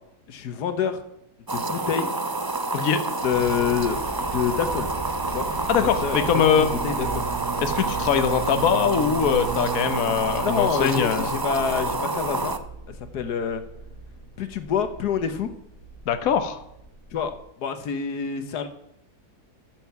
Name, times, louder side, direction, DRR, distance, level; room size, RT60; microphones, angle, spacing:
voice 1, 0.3-1.0 1.5-2.1 3.2-4.0 4.3-4.9 5.3-5.5 5.8-6.5 6.8-7.2 10.4-12.6 12.9-13.6 14.4-15.5 17.1-17.3 17.6-18.7, left 7 dB, 90° left, 9 dB, 1.6 m, -27 dB
sound 1, 1.5-12.6, right 2 dB, 30° right, 0.4 m, -28 dB
sound 2, 3.3-17.4, right 3 dB, 35° left, 4.6 m, -39 dB
voice 2, 5.7-6.7 7.6-11.3 16.1-16.6, left 7 dB, 65° left, 9 dB, 1.4 m, -22 dB
Bowed string instrument, 6.2-11.6, right 11 dB, 65° right, 1.3 m, -36 dB
13.0 x 7.8 x 5.8 m, 0.82 s
omnidirectional pair, 1.7 m